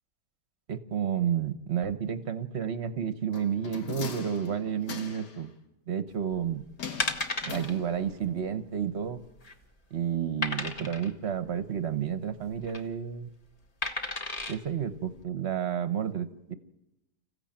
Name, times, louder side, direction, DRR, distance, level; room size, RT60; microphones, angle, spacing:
voice 1, 0.7-5.5 5.9-6.6 7.5-9.2 9.9-13.3 14.5-16.5, right 8 dB, 45° right, 12 dB, 1.1 m, -31 dB
sound 1, 3.3-5.4 6.8-8.2 8.5-8.6, left 5 dB, 80° left, 2.1 m, -41 dB
sound 2, 6.3-6.5 7.0-7.7 8.1-8.2 8.5-8.6 9.2-9.6 10.4-11.1 12.4-12.8 13.8-14.6 15.2-15.3, left 2 dB, 25° left, 1.2 m, -33 dB
26.0 x 15.0 x 8.9 m, 0.97 s
omnidirectional pair, 1.8 m